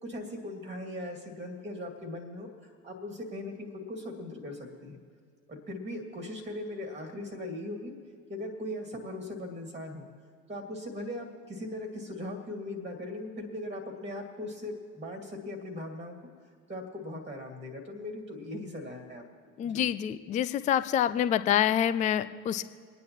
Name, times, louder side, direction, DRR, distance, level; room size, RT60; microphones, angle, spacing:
voice 1, 0.0-5.0 5.5-7.9 8.3-10.1 10.5-16.2 16.7-19.2 19.6-19.8, left 1 dB, 15° right, 4 dB, 2.0 m, -39 dB
voice 2, 19.6-22.6, left 10 dB, 20° left, 12 dB, 0.4 m, -27 dB
28.0 x 9.6 x 3.0 m, 2.1 s
figure-of-eight pair, 65°, 42 cm